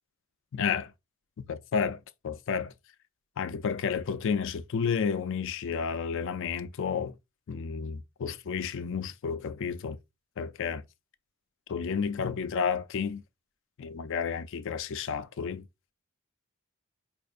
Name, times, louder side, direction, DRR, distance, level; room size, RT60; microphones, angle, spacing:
voice 1, 0.5-0.9 1.4-2.7 3.4-7.1 7.5-10.0 10.4-10.8 11.7-13.2 13.8-15.7, left 6 dB, 60° left, 0.4 m, -31 dB
5.0 x 2.5 x 2.5 m
head